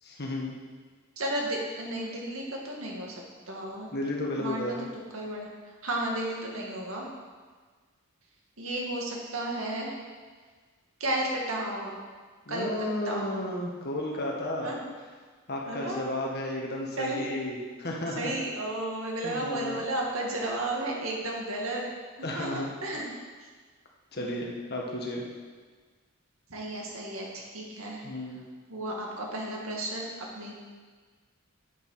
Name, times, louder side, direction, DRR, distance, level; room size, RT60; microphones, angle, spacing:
voice 1, 0.0-0.6 3.9-4.9 12.4-14.7 15.5-18.3 19.2-19.8 22.2-22.7 24.1-25.3 28.0-28.4, left 1 dB, 50° left, -1 dB, 1.6 m, -33 dB
voice 2, 1.2-3.1 3.5-3.9 4.4-4.8 5.1-5.5 5.8-7.1 8.6-9.9 11.0-11.9 12.5-12.7 13.1-13.4 14.1-14.3 14.6-14.8 15.7-16.0 17.0-17.3 18.2-21.8 22.4-23.1 24.2-24.5 26.5-28.0 28.7-30.5, right 1 dB, 80° right, -2 dB, 2.0 m, -33 dB
8.4 x 7.1 x 5.7 m, 1.5 s
head